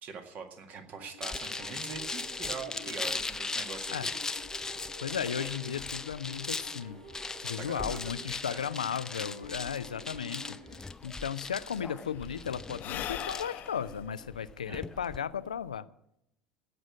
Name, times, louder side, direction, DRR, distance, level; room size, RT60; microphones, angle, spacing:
voice 1, 0.0-4.1 7.4-8.1 8.4-8.6 14.7-14.8, right 6 dB, 45° right, 6 dB, 1.9 m, -43 dB
sound 1, 0.9-10.8, left 1 dB, 85° right, 4.1 m, -50 dB
sound 2, 1.2-15.2, left 3 dB, 15° left, 0.6 m, -38 dB
voice 2, 5.0-7.0 7.4-10.6 11.0-15.9, left 8 dB, 75° left, 16 dB, 0.5 m, -35 dB
Sigh / Breathing, 10.7-10.8 11.0-15.8, left 11 dB, 45° left, 0.9 m, -42 dB
16.5 x 6.2 x 8.6 m, 0.82 s
figure-of-eight pair, 65°, 4 cm